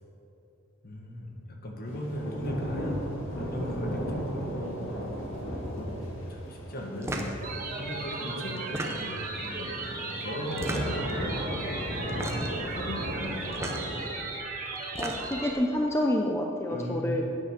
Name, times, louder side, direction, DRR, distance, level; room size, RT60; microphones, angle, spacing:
voice 1, 0.8-3.0 3.4-5.0 5.4-13.8 16.7-17.2, equal, 50° left, 1 dB, 1.7 m, -38 dB
sound 1, 1.9-14.1, equal, 85° left, 2.1 m, -36 dB
sound 2, 7.0-7.4 8.6-9.3 10.5-11.1 12.1-12.6 13.5-13.8 14.8-15.4, right 1 dB, 15° right, 0.9 m, -35 dB
sound 3, 7.4-15.5, right 3 dB, 45° right, 1.6 m, -36 dB
voice 2, 15.0-17.2, left 1 dB, 15° left, 1 dB, 0.6 m, -28 dB
9.3 x 9.2 x 6.6 m, 3.0 s
head